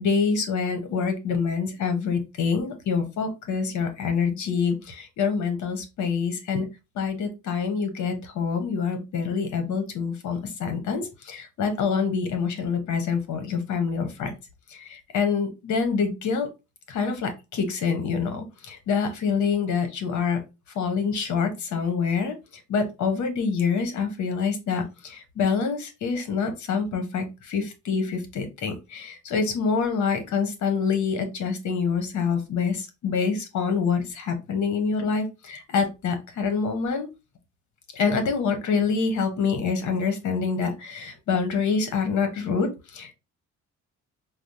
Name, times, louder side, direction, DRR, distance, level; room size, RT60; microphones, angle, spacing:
voice 1, 0.0-6.7 7.0-14.3 14.8-16.5 16.9-20.4 20.8-22.4 22.7-37.1 37.9-43.1, left 5 dB, 70° left, 7 dB, 0.9 m, -26 dB
4.2 x 2.0 x 2.6 m, 0.26 s
cardioid pair, 90°, 30 cm